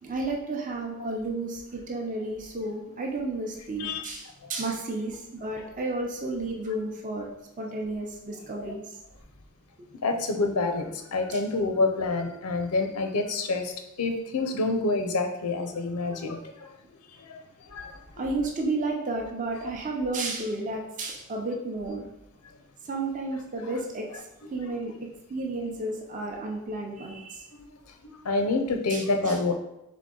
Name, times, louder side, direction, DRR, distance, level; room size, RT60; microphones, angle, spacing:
voice 1, 0.0-7.3 7.6-9.0 18.2-22.1 22.8-24.9 25.3-27.5 28.9-29.3, right 2 dB, 35° right, 0 dB, 0.6 m, -32 dB
voice 2, 10.0-16.7 17.1-18.2 27.5-27.7 28.0-29.5, left 3 dB, 85° left, 6 dB, 0.6 m, -28 dB
3.8 x 3.4 x 3.8 m, 0.85 s
head